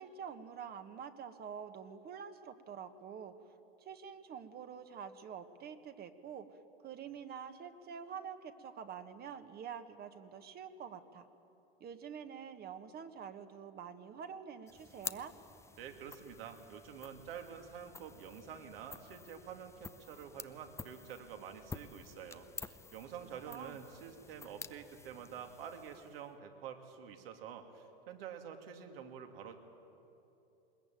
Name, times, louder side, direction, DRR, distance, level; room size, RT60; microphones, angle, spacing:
voice 1, 0.0-11.3 11.8-15.3 23.5-23.8, right 7 dB, 30° right, 9 dB, 1.4 m, -47 dB
sound 1, 14.7-26.3, left 4 dB, 10° left, 0.6 m, -50 dB
voice 2, 15.8-29.6, right 7 dB, 70° right, 5 dB, 2.7 m, -48 dB
21.0 x 20.5 x 9.1 m, 2.9 s
hypercardioid pair, 105°, 30 cm